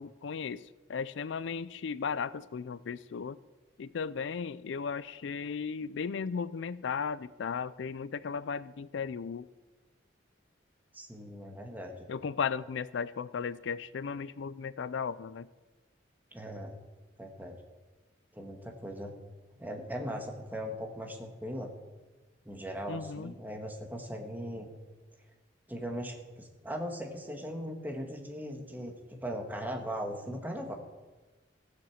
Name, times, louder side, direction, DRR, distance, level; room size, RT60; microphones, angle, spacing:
voice 1, 0.0-3.4 3.8-9.5 12.1-15.5 22.9-23.3, left 6 dB, 75° left, 18 dB, 0.4 m, -36 dB
voice 2, 10.9-12.1 16.3-16.7 17.2-17.6 18.3-19.1 19.6-21.7 22.4-24.7 25.7-30.7, equal, 10° right, 2 dB, 1.7 m, -39 dB
15.5 x 7.7 x 7.2 m, 1.2 s
head